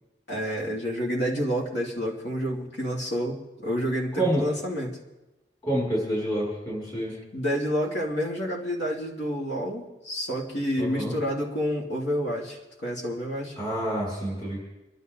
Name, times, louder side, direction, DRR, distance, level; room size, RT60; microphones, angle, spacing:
voice 1, 0.3-5.0 7.3-13.6, equal, 70° left, -1 dB, 2.9 m, -29 dB
voice 2, 4.2-4.5 5.6-7.2 10.8-11.2 13.6-14.6, right 1 dB, 25° left, -6 dB, 6.2 m, -28 dB
26.5 x 11.5 x 4.0 m, 1.0 s
head